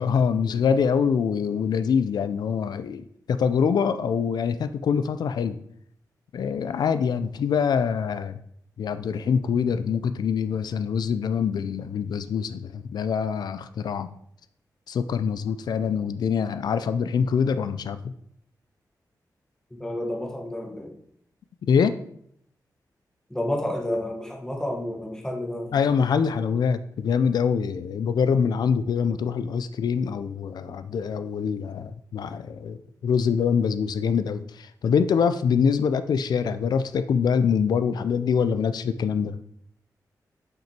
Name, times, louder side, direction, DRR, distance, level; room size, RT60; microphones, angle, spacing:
voice 1, 0.0-5.6 6.3-8.4 8.8-14.1 14.9-18.1 21.6-22.0 25.7-32.8 33.0-39.3, left 6 dB, 80° left, 12 dB, 0.4 m, -24 dB
voice 2, 19.7-21.0 23.3-25.9, left 1 dB, 10° left, 1 dB, 1.2 m, -30 dB
6.1 x 5.8 x 4.3 m, 0.68 s
wide cardioid pair, 145°, 7 cm